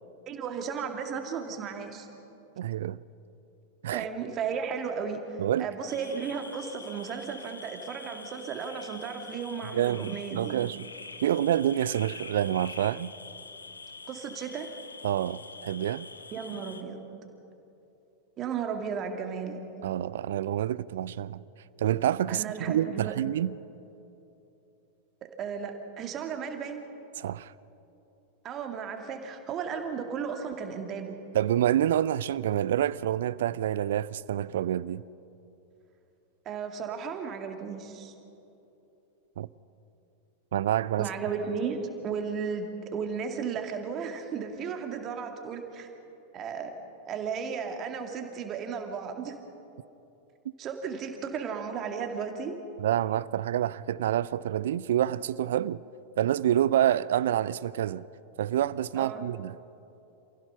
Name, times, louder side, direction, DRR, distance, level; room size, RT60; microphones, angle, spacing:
voice 1, 0.3-2.1 3.9-10.6 14.1-14.7 16.3-17.0 18.4-19.6 22.3-23.1 25.4-26.8 28.4-31.1 36.5-38.1 41.0-45.9 46.3-46.7 47.0-49.3 50.6-52.5 59.0-59.3, right 6 dB, 30° right, 2.3 m, -34 dB
voice 2, 2.6-3.0 3.8-4.1 5.4-5.7 9.7-10.9 11.2-13.1 15.0-16.1 19.8-21.4 21.8-23.5 27.2-27.5 31.3-35.0 39.4-39.5 40.5-41.1 52.8-55.8 56.2-58.0 58.4-59.6, right 11 dB, 60° right, 0.4 m, -27 dB
sound 1, 5.9-16.8, left 3 dB, 80° left, 1.1 m, -45 dB
28.0 x 16.0 x 5.7 m
figure-of-eight pair, 90°, 0 cm